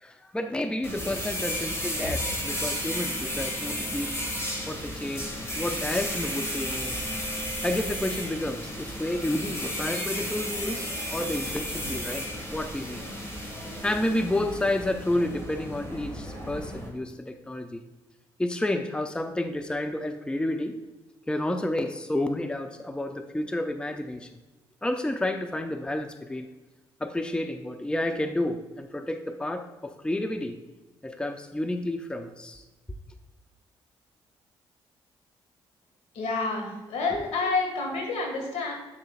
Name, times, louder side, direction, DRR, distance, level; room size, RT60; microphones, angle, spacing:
voice 1, 0.0-4.1 4.7-5.3 5.5-7.0 7.6-13.0 13.8-17.8 18.4-20.8 21.3-24.3 24.8-26.5 27.0-30.6 31.0-32.6, left 1 dB, 10° left, 7 dB, 0.6 m, -30 dB
sound 1, 0.8-16.9, equal, 25° left, 2.1 m, -33 dB
voice 2, 36.1-38.7, left 3 dB, 70° left, 1 dB, 1.9 m, -28 dB
8.6 x 6.3 x 2.4 m, 1.1 s
hypercardioid pair, 50°, 11 cm